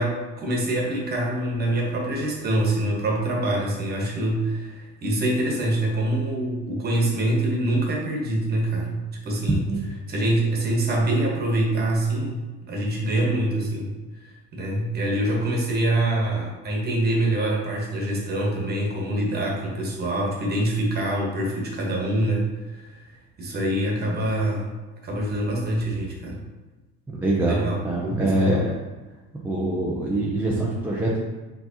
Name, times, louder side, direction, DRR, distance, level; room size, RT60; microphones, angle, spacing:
voice 1, 0.0-9.7 10.1-13.9 14.2-23.0 23.4-24.7 25.0-26.4 27.4-28.6, right 1 dB, 30° right, -2 dB, 1.1 m, -25 dB
voice 2, 27.1-28.7 29.4-31.2, right 1 dB, 5° right, -4 dB, 0.4 m, -24 dB
4.6 x 3.9 x 2.8 m, 1.2 s
cardioid pair, 145°, 33 cm